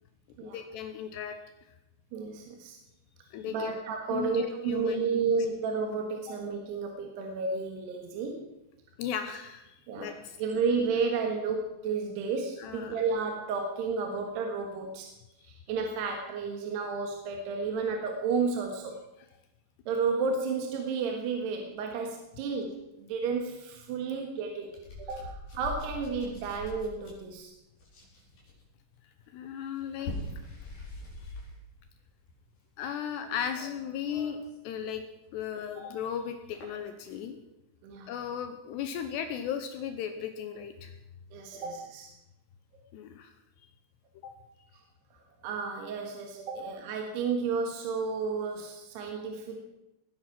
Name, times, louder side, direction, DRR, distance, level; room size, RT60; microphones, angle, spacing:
voice 1, 0.4-1.4 3.3-3.7 4.1-5.2 6.3-6.4 9.0-10.6 12.6-13.0 29.3-30.1 32.8-34.4 34.6-35.0 35.3-37.4 38.1-40.9 42.9-43.3 44.2-44.3 46.5-46.6, left 8 dB, 75° left, 8 dB, 2.9 m, -36 dB
voice 2, 2.1-2.8 3.5-8.5 9.9-10.1 10.4-15.1 15.4-19.0 19.9-24.7 25.0-27.5 37.8-38.1 41.3-42.1 45.4-49.7, right 5 dB, 70° right, 2 dB, 3.5 m, -32 dB
sound 1, 23.3-23.4 24.6-27.4 27.8-28.6 29.8-31.7 32.0-32.3 33.2-34.6 34.9-35.0 35.7-35.8 36.5-37.1, left 2 dB, 55° left, 6.1 m, -42 dB
19.5 x 10.0 x 6.0 m, 0.92 s
omnidirectional pair, 5.2 m